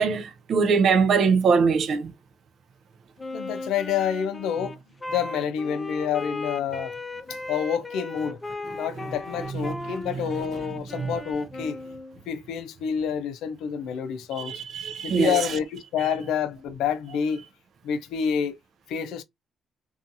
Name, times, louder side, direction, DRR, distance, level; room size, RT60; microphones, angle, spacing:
voice 1, 0.0-2.1 11.0-11.1 14.4-15.4, right 5 dB, 65° right, 0.4 m, -22 dB
Wind instrument woodwind instrument, 3.2-12.2, left 2 dB, 20° left, 0.5 m, -37 dB
voice 2, 3.3-4.8 5.1-6.9 7.3-8.4 8.7-11.8 12.3-14.5 15.0-17.4 17.8-18.6 18.9-19.2, left 8 dB, 90° left, 0.4 m, -28 dB
2.6 x 2.3 x 2.5 m
cardioid pair, 90°, 0 cm